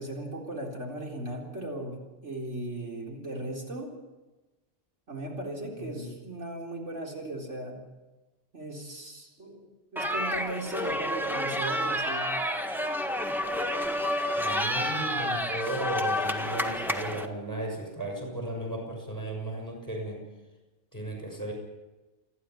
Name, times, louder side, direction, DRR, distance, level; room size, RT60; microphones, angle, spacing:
voice 1, 0.0-3.9 5.1-7.8 8.5-9.7 9.9-12.3, right 1 dB, 80° right, -1 dB, 4.4 m, -37 dB
voice 2, 5.7-6.2 14.3-20.2 20.9-21.5, right 1 dB, 15° left, 1 dB, 6.8 m, -35 dB
sound 1, 10.0-17.3, equal, ahead, 1.5 m, -29 dB
28.0 x 11.0 x 9.4 m, 1.1 s
omnidirectional pair, 1.2 m